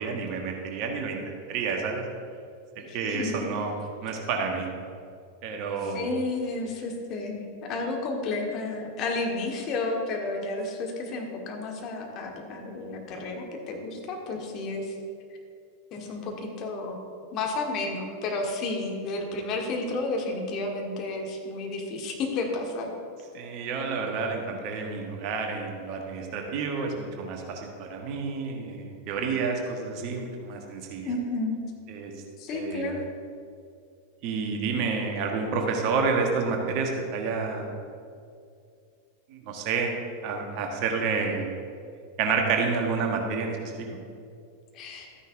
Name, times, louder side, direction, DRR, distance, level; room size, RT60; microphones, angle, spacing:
voice 1, 0.0-2.0 2.9-3.7 4.0-4.7 5.4-6.1 23.3-31.1 31.9-32.1 32.5-33.0 34.2-37.7 39.3-40.0 40.2-41.6 42.2-43.9, right 4 dB, 40° right, 2 dB, 1.3 m, -29 dB
voice 2, 2.8-3.3 5.8-14.9 15.9-17.0 17.3-22.9 31.0-31.6 32.4-33.0 44.7-45.1, left 3 dB, 35° left, 1 dB, 1.4 m, -32 dB
12.5 x 9.7 x 2.6 m, 2.3 s
figure-of-eight pair, 90°, 0 cm